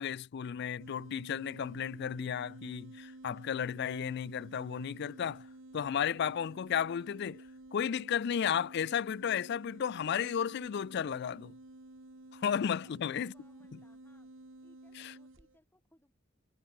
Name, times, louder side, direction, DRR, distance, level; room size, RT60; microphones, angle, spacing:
voice 1, 0.0-5.5 5.7-7.4 7.7-11.5 12.3-13.3, left 8 dB, 55° left, 0.4 m, -33 dB
sound 1, 0.8-15.6, right 2 dB, 70° right, 1.7 m, -52 dB
voice 2, 12.8-14.3 14.6-16.1, left 1 dB, 10° left, 2.6 m, -67 dB
head